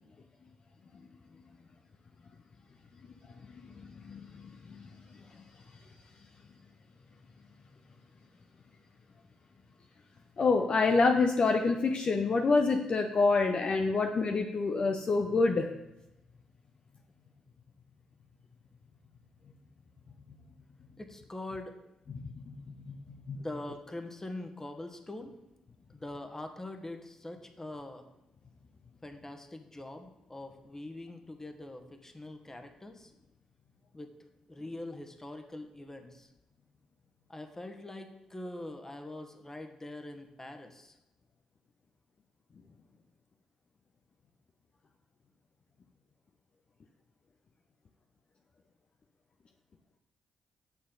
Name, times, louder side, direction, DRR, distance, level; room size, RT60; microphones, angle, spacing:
voice 1, 10.4-15.7 22.1-22.5 23.3-23.4, left 3 dB, 45° left, 4 dB, 0.7 m, -26 dB
voice 2, 21.0-21.7 23.3-25.3 25.9-28.0 29.0-33.1 33.9-34.2 34.5-36.3 37.3-40.9, left 1 dB, 20° left, 6 dB, 1.4 m, -43 dB
8.6 x 6.4 x 3.8 m, 0.93 s
hypercardioid pair, 40°, 2 cm